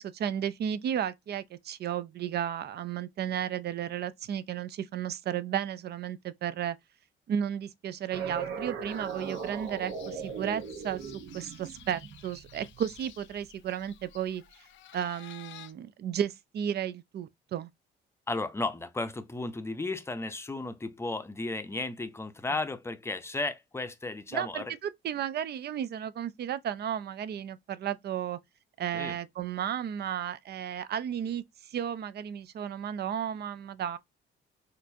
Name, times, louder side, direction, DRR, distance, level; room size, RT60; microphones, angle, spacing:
voice 1, 0.0-6.8 7.3-11.0 11.3-14.6 14.9-17.7 24.3-28.4 28.8-34.0, right 9 dB, 55° right, 0.5 m, -33 dB
sound 1, 8.1-13.4, right 6 dB, 75° right, 0.9 m, -39 dB
sound 2, 8.9-15.7, left 12 dB, 75° left, 0.5 m, -53 dB
voice 2, 18.3-24.7 28.9-29.1, left 2 dB, 15° left, 0.6 m, -34 dB
4.3 x 2.5 x 2.6 m
cardioid pair, 90°, 20 cm